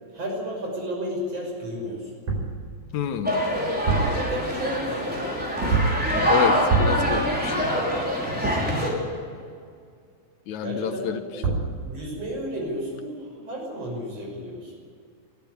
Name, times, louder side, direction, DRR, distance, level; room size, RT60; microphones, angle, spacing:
voice 1, 0.1-2.1 4.1-5.3 10.6-11.5 11.8-14.8, equal, 55° right, 0 dB, 7.1 m, -33 dB
sound 1, 2.3-2.6 3.7-4.2 5.7-6.1 6.7-7.1 11.1-11.2 11.4-11.8, right 4 dB, 80° right, 5.9 m, -24 dB
voice 2, 2.9-3.4 6.3-7.7 10.5-11.2, left 8 dB, 80° left, 9 dB, 2.4 m, -28 dB
sound 2, 3.2-8.9, equal, 5° right, 4.7 m, -25 dB
sound 3, 4.0-4.5 5.6-6.4 8.4-9.3, right 1 dB, 35° right, 3.2 m, -33 dB
21.0 x 14.0 x 10.0 m, 2.2 s
omnidirectional pair, 3.4 m